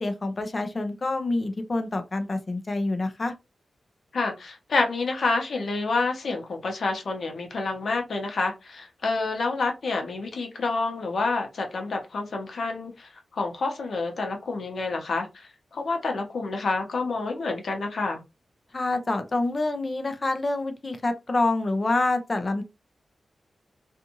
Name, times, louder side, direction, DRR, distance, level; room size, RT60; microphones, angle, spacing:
voice 1, 0.0-3.3 18.7-22.6, left 2 dB, 35° left, 0.5 m, -27 dB
voice 2, 4.1-18.2, left 3 dB, 65° left, 0.8 m, -28 dB
2.6 x 2.4 x 2.8 m
wide cardioid pair, 115°, 0 cm